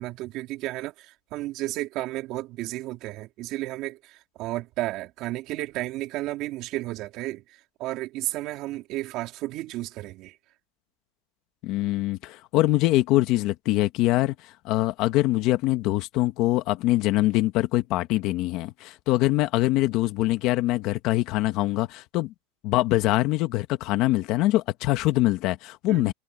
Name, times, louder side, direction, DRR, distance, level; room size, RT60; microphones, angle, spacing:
voice 1, 0.0-7.4 7.8-10.4 25.9-26.1, right 17 dB, 40° right, 3.9 m, -33 dB
voice 2, 11.6-22.3 22.6-26.1, left 17 dB, 40° left, 1.4 m, -23 dB
supercardioid pair, 160°, 0 cm